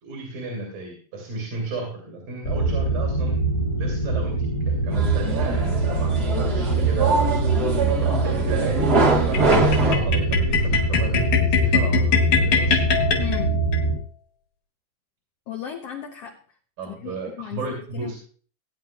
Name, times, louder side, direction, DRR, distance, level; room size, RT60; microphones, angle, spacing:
voice 1, 0.0-3.4 3.8-7.4 7.8-9.0 9.3-12.8 16.8-18.2, right 3 dB, 75° right, 0 dB, 4.3 m, -33 dB
sound 1, 2.4-14.0, right 3 dB, 40° left, 1.5 m, -24 dB
sound 2, 4.9-9.9, right 3 dB, 55° right, 1.1 m, -23 dB
sound 3, 9.3-13.8, left 5 dB, 60° left, 2.9 m, -22 dB
voice 2, 13.2-13.6 15.5-16.4 16.9-18.1, left 10 dB, 85° left, 3 dB, 1.3 m, -35 dB
19.0 x 9.4 x 2.4 m, 0.44 s
omnidirectional pair, 4.0 m